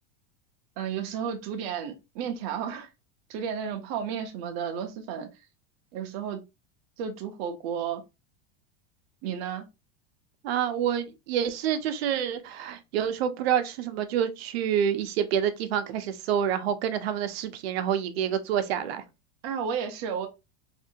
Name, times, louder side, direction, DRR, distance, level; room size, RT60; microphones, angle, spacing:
voice 1, 0.8-2.9 3.3-5.3 5.9-6.4 7.0-8.0 9.2-9.7 19.4-20.3, right 7 dB, 40° right, 0.6 m, -32 dB
voice 2, 10.4-19.0, right 9 dB, 85° right, 0.7 m, -27 dB
2.7 x 2.5 x 2.7 m
supercardioid pair, 170°, 30 cm